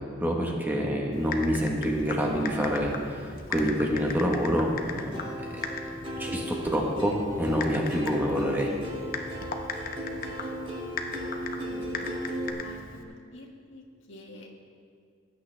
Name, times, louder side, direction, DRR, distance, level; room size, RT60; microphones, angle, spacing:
voice 1, 0.2-5.2 5.6-5.7 6.2-8.7, equal, 10° right, 0 dB, 1.1 m, -27 dB
Typing, 1.1-13.0, left 4 dB, 45° left, 0.9 m, -38 dB
Plucked string instrument, 5.1-12.5, equal, 25° right, 1.8 m, -36 dB
voice 2, 11.6-12.1 12.6-13.8 14.1-14.5, left 2 dB, 75° left, 0 dB, 1.7 m, -47 dB
19.0 x 8.8 x 3.3 m, 2.2 s
head